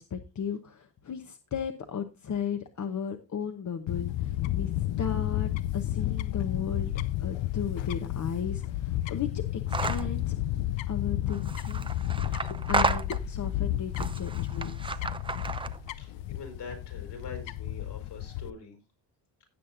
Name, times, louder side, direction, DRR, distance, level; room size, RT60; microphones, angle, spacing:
voice 1, 0.0-4.7 5.0-6.9 7.2-10.3 10.9-11.9 12.2-15.1, left 7 dB, 40° left, 6 dB, 1.0 m, -35 dB
Fowl / Bird, 3.9-18.5, left 14 dB, 75° left, 0.7 m, -32 dB
sound 1, 9.7-10.1 11.3-13.5 13.9-15.9, right 4 dB, 10° right, 0.5 m, -32 dB
voice 2, 16.0-18.8, left 4 dB, 60° left, 4 dB, 4.8 m, -44 dB
16.5 x 7.4 x 2.6 m, 0.26 s
cardioid pair, 120°, 45 cm